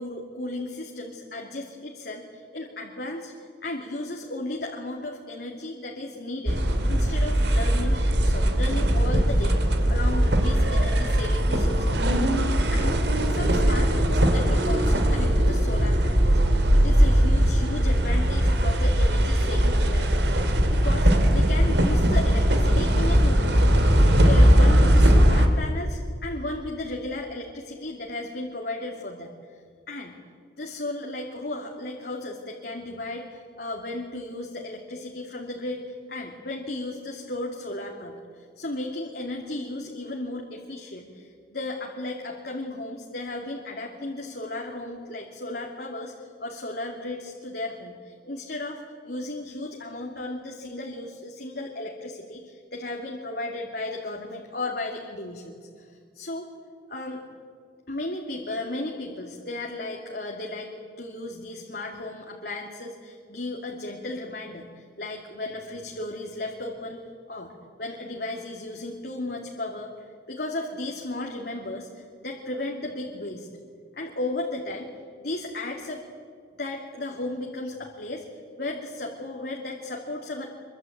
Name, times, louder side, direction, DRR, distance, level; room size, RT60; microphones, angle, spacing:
voice 1, 0.0-3.3 3.6-6.6 6.9-9.6 9.9-12.1 12.7-13.0 13.3-23.6 24.1-29.6 29.9-30.2 30.6-56.5 56.9-57.2 57.9-60.7 61.0-67.5 67.8-73.5 74.0-74.9 75.2-76.0 76.6-80.5, left 2 dB, 55° left, 0 dB, 2.6 m, -35 dB
sound 1, 6.5-25.5, equal, 65° right, 2.9 m, -20 dB
25.5 x 23.0 x 9.3 m, 2.1 s
head